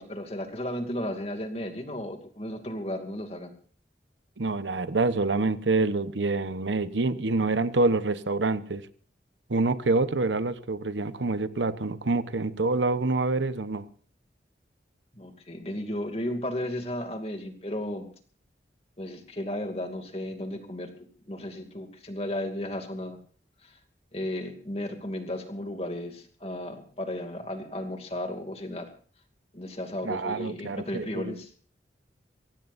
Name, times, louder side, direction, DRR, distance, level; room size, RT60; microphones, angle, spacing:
voice 1, 0.0-3.5 15.1-18.1 19.0-23.2 23.6-23.8 24.1-28.9 29.5-31.5, left 1 dB, 35° left, 5 dB, 2.4 m, -34 dB
voice 2, 4.4-8.9 9.5-13.8 30.0-31.3, right 3 dB, 85° right, 13 dB, 1.0 m, -26 dB
24.0 x 17.0 x 2.6 m, 0.42 s
head